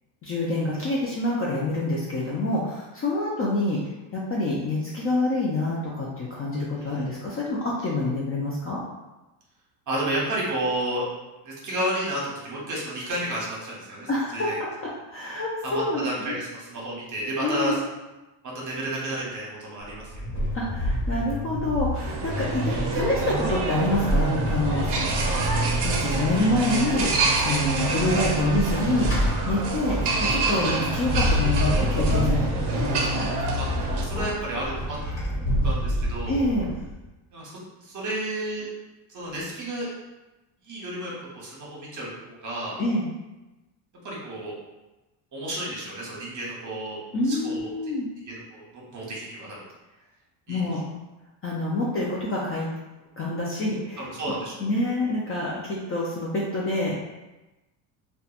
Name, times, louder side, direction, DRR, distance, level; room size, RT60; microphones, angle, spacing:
voice 1, 0.2-3.8 4.1-8.8 14.1-14.7 15.1-16.4 17.4-17.8 20.5-24.9 25.8-27.1 27.4-32.5 32.7-33.3 36.3-36.7 42.8-43.0 47.1-48.1 50.5-50.8 51.4-52.7 53.2-54.1 54.6-57.1, left 2 dB, 30° left, -5 dB, 0.4 m, -27 dB
voice 2, 9.9-11.0 11.4-14.6 15.6-17.7 18.4-20.1 27.8-28.0 33.6-33.7 34.0-35.0 35.6-36.4 37.3-37.5 37.8-38.7 39.1-39.9 40.6-42.8 44.0-44.5 45.3-47.0 47.3-49.6 50.5-50.6 54.0-54.6, right 1 dB, 35° right, -4 dB, 0.9 m, -32 dB
Vehicle / Accelerating revving vroom / Squeak, 19.8-37.0, equal, 50° left, 1.3 m, -27 dB
sound 1, 21.9-34.0, right 4 dB, 55° right, 0.6 m, -28 dB
2.7 x 2.2 x 2.4 m, 1.1 s
cardioid pair, 105°, 50 cm